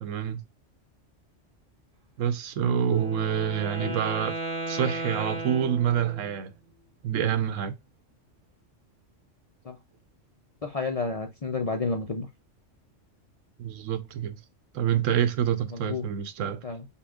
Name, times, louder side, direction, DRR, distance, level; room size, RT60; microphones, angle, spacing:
voice 1, 0.0-0.4 2.2-4.3 4.7-6.5 7.0-7.7 13.6-14.4 14.7-16.6, right 9 dB, 80° right, 1.0 m, -27 dB
Wind instrument woodwind instrument, 2.8-6.4, right 1 dB, 25° right, 0.9 m, -35 dB
voice 2, 10.6-12.3 15.7-16.1 16.6-16.8, left 4 dB, 50° left, 0.4 m, -31 dB
5.6 x 2.3 x 3.6 m
omnidirectional pair, 1.3 m